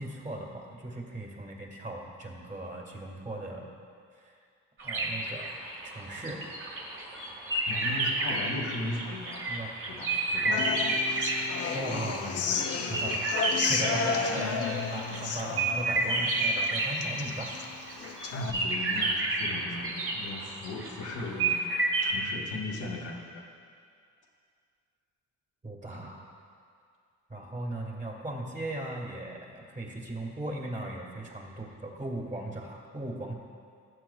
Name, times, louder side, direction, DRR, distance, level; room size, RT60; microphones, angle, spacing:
voice 1, 0.0-3.6 4.2-4.3 4.8-5.5 5.8-6.4 9.5-9.7 11.7-12.5 12.9-17.6 25.6-26.3 27.3-33.3, right 1 dB, 25° right, 0 dB, 1.9 m, -38 dB
sound 1, 4.8-12.0 12.2-22.1, right 2 dB, 45° right, 1.9 m, -31 dB
voice 2, 7.7-9.5 9.9-10.9 18.3-21.6 22.0-23.5, left 2 dB, 75° left, -1 dB, 1.5 m, -37 dB
Human voice / Acoustic guitar, 10.5-18.5, left 6 dB, 55° left, 0.7 m, -33 dB
18.0 x 7.5 x 2.3 m, 2.3 s
cardioid pair, 90°, 30 cm